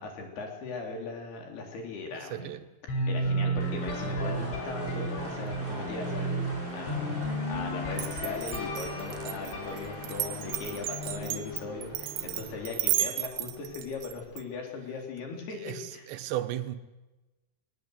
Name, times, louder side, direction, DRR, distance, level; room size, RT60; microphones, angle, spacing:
voice 1, 0.0-2.5 3.1-16.1, left 4 dB, 60° left, 5.4 m, -39 dB
voice 2, 2.1-2.6 15.6-16.8, right 13 dB, 75° right, 3.0 m, -35 dB
sound 1, 2.9-12.7, right 1 dB, 75° left, 5.7 m, -34 dB
sound 2, 3.6-13.0, right 1 dB, 20° right, 5.1 m, -43 dB
Glass, 7.9-14.4, right 15 dB, 90° right, 3.4 m, -33 dB
22.0 x 19.0 x 8.1 m
omnidirectional pair, 5.5 m